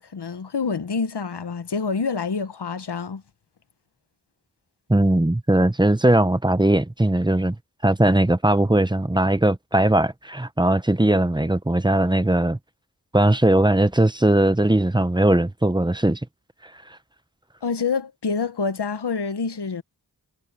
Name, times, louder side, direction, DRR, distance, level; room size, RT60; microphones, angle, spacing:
voice 1, 0.0-3.2 17.6-19.8, left 5 dB, 85° left, 1.2 m, -27 dB
voice 2, 4.9-7.6 7.8-12.6 13.1-16.2, right 1 dB, 10° right, 0.9 m, -19 dB
wide cardioid pair, 65°, 39 cm